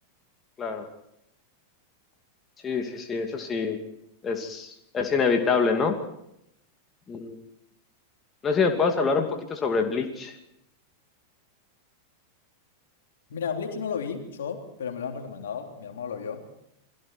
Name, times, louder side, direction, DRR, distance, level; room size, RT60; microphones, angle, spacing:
voice 1, 2.6-3.8 4.2-6.0 7.1-7.4 8.4-10.3, left 5 dB, 20° left, 4 dB, 2.6 m, -25 dB
voice 2, 13.3-16.4, left 6 dB, 60° left, 3 dB, 3.6 m, -33 dB
29.5 x 22.5 x 4.5 m, 0.79 s
figure-of-eight pair, 90°, 0 cm